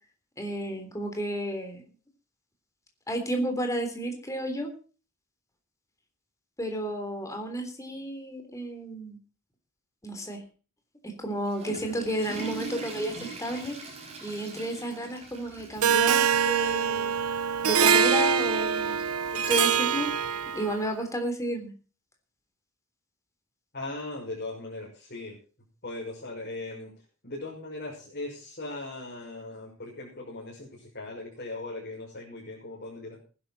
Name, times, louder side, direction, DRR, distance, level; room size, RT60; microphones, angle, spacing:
voice 1, 0.4-1.8 3.1-4.7 6.6-9.2 10.0-10.4 11.0-13.8 14.2-17.2 17.6-19.0 19.3-20.1 20.5-21.7, right 1 dB, 15° left, 4 dB, 3.5 m, -32 dB
Water / Toilet flush, 11.2-16.2 16.5-16.6 17.3-17.4 18.7-18.8, right 3 dB, 30° right, 5.4 m, -41 dB
Harp, 15.8-20.8, right 7 dB, 75° right, 0.8 m, -24 dB
voice 2, 23.7-25.4 25.8-26.9 27.2-33.2, left 2 dB, 45° left, -5 dB, 6.2 m, -39 dB
19.0 x 11.5 x 4.3 m, 0.37 s
head